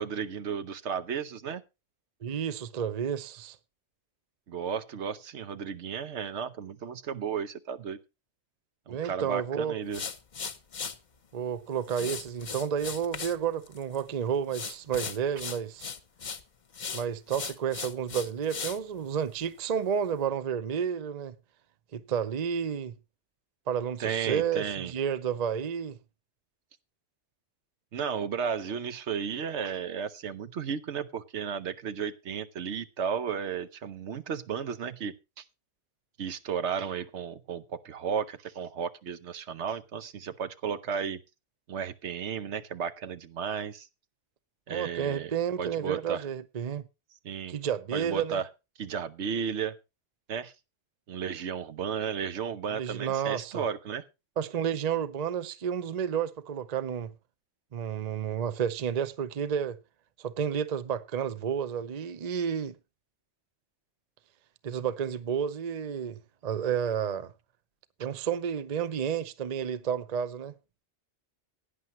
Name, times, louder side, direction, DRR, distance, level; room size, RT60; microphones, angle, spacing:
voice 1, 0.0-1.6 4.5-8.0 8.9-10.0 24.0-24.9 27.9-35.4 36.2-41.2 41.7-43.9 44.7-46.3 47.2-47.6 47.9-48.5 48.8-49.8 50.3-50.5 51.1-54.0, right 7 dB, 75° right, 1.1 m, -34 dB
voice 2, 2.2-3.6 8.9-9.8 11.3-15.9 16.9-21.3 21.9-22.9 23.7-26.0 44.7-46.8 47.5-48.4 52.7-53.6 54.4-57.1 57.7-59.8 60.2-62.7 64.6-67.3 68.0-70.5, right 8 dB, 40° right, 0.7 m, -31 dB
sound 1, 9.9-11.0 11.9-13.4 13.7-14.1 14.5-16.4 16.7-18.8, left 6 dB, 40° left, 0.9 m, -37 dB
16.5 x 9.7 x 3.0 m
omnidirectional pair, 1.2 m